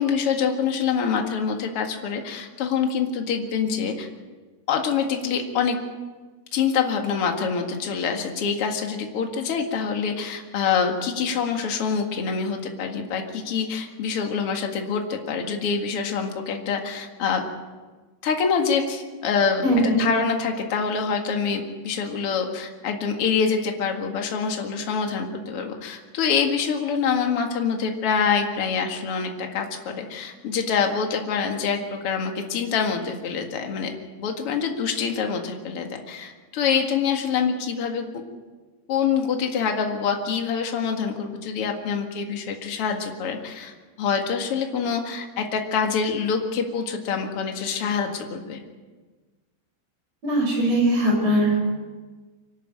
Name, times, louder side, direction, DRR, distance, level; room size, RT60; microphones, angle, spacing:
voice 1, 0.0-4.1 4.7-5.8 6.5-17.4 18.2-19.6 20.0-33.9 34.2-38.0 38.9-48.6, left 6 dB, 50° left, 3 dB, 1.8 m, -25 dB
voice 2, 19.6-20.0 50.2-51.7, right 1 dB, 35° right, -1 dB, 7.1 m, -20 dB
25.5 x 12.0 x 9.0 m, 1.3 s
omnidirectional pair, 5.2 m